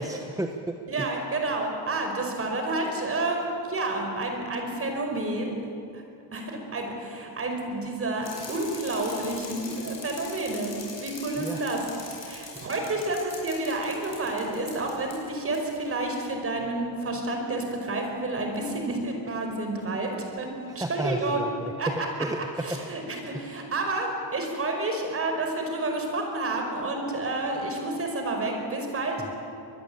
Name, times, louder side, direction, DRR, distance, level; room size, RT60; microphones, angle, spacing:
voice 1, 0.0-1.1 11.4-11.6 12.5-12.7 20.7-22.8 23.3-23.7 29.2-29.3, right 1 dB, 10° right, 4 dB, 1.1 m, -33 dB
voice 2, 0.9-5.6 5.9-6.0 6.3-10.7 11.0-11.8 12.2-20.5 20.8-21.4 21.8-22.1 22.6-29.4, right 2 dB, 30° right, 3 dB, 5.1 m, -30 dB
Bicycle, 8.2-15.2 15.5-15.6, left 4 dB, 35° left, 7.5 m, -42 dB
24.0 x 20.5 x 8.7 m, 2.6 s
cardioid pair, 145°, 42 cm